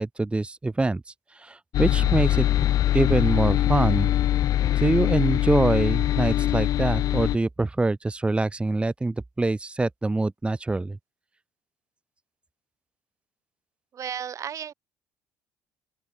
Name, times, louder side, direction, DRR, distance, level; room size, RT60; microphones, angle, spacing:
voice 1, 0.0-2.5 2.9-4.1 4.7-11.0, right 2 dB, 15° right, 1.1 m, -25 dB
sound 1, 1.7-7.4, left 13 dB, 60° left, 0.7 m, -22 dB
voice 2, 13.9-14.7, right 8 dB, 50° right, 3.8 m, -33 dB
open air
hypercardioid pair, 60°, 7 cm